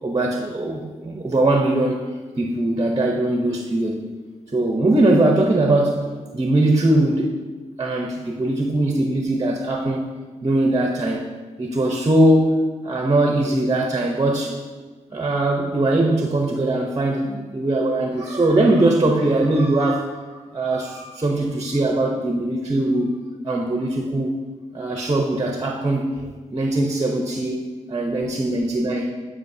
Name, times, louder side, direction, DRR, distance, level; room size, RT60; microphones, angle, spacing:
voice 1, 0.0-2.0 2.4-4.0 4.5-6.1 6.3-7.3 7.8-10.1 10.4-11.3 11.6-12.6 12.8-14.6 15.1-23.2 23.4-24.3 24.7-27.6 27.9-29.1, right 1 dB, 30° right, 1 dB, 0.8 m, -21 dB
10.5 x 5.1 x 2.7 m, 1.4 s
cardioid pair, 60°, 13 cm